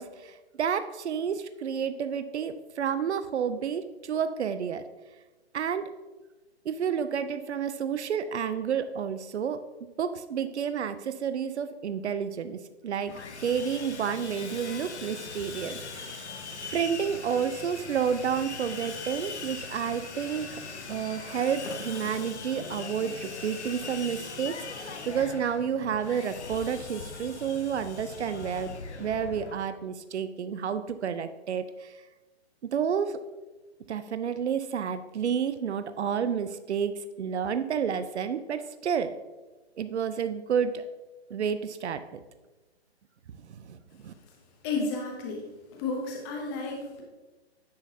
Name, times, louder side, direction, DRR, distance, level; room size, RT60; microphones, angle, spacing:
voice 1, 0.0-4.8 5.5-5.9 6.7-9.6 10.0-13.1 13.4-16.3 16.7-20.6 20.9-31.9 32.7-33.2 33.9-39.2 39.8-40.8 41.3-42.2 43.4-43.8 44.0-44.1, right 7 dB, 80° right, 11 dB, 0.5 m, -30 dB
Sawing, 13.1-29.5, left 4 dB, 85° left, 0.9 m, -40 dB
voice 2, 44.6-45.4 45.7-47.0, left 3 dB, 20° left, 0 dB, 0.8 m, -32 dB
9.7 x 3.9 x 2.7 m, 1.2 s
hypercardioid pair, 140°, 33 cm